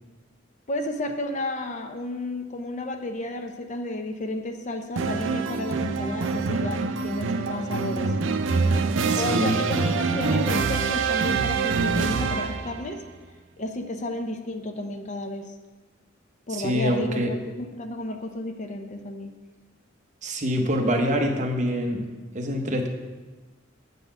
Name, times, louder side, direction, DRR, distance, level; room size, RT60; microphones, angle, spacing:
voice 1, 0.7-8.1 9.1-13.0 13.6-15.5 16.5-19.3, left 1 dB, 40° left, 6 dB, 0.6 m, -32 dB
sound 1, 5.0-12.8, right 4 dB, 70° right, 0.5 m, -25 dB
voice 2, 9.1-9.5 16.5-17.3 20.2-22.1 22.3-22.9, equal, 40° right, 3 dB, 0.8 m, -25 dB
7.4 x 4.0 x 6.6 m, 1.3 s
head